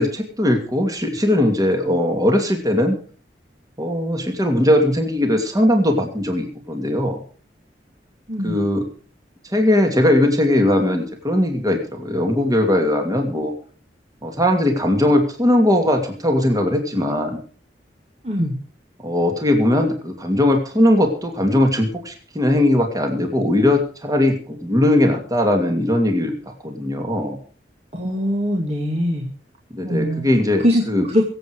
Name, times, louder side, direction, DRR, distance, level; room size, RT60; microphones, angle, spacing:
voice 1, 0.0-3.0 3.8-7.2 8.4-8.9 9.5-13.5 14.2-17.4 19.0-26.3 26.6-27.4 29.7-31.1, left 1 dB, 20° right, 4 dB, 2.5 m, -19 dB
voice 2, 8.3-8.6 18.2-18.6 27.9-29.3 29.8-30.3 30.6-31.2, equal, 35° right, -1 dB, 2.4 m, -22 dB
23.0 x 8.3 x 4.7 m, 0.41 s
head